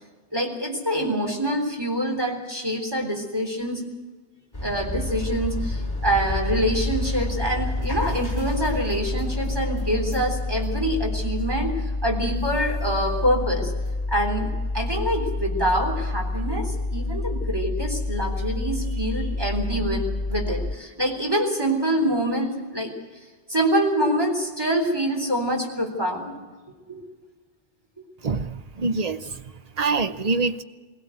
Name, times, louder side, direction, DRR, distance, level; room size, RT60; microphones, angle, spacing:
voice 1, 0.3-3.8 4.6-13.7 14.1-22.9 23.5-26.3 26.9-27.0, equal, 20° right, 1 dB, 3.8 m, -25 dB
sound 1, 4.5-20.7, left 2 dB, 35° left, 3.1 m, -28 dB
voice 2, 28.2-29.4 29.8-30.6, right 4 dB, 40° right, 11 dB, 0.9 m, -25 dB
21.0 x 16.5 x 8.0 m, 1.4 s
omnidirectional pair, 1.1 m